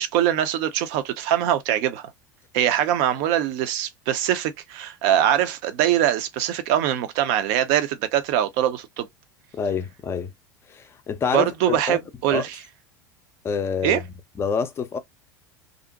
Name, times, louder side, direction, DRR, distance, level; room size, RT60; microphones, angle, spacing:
voice 1, 0.0-2.0 2.5-9.1 11.3-12.6 13.8-14.0, right 11 dB, 50° right, 0.5 m, -23 dB
voice 2, 9.5-10.3 10.7-12.0 12.3-12.4 13.4-14.0 14.4-15.0, left 6 dB, 20° left, 0.5 m, -27 dB
2.5 x 2.1 x 2.6 m
figure-of-eight pair, 75°, 11 cm